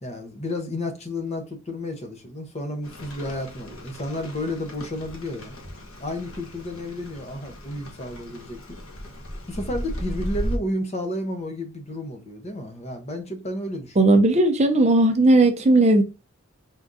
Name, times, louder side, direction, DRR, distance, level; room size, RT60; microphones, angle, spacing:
voice 1, 0.0-5.5 6.0-8.8 9.5-14.2, left 1 dB, 30° left, 0.9 m, -32 dB
Rain, 2.8-10.6, equal, 70° left, 1.2 m, -36 dB
voice 2, 14.0-16.0, right 2 dB, 30° right, 0.6 m, -17 dB
4.4 x 3.7 x 2.6 m
head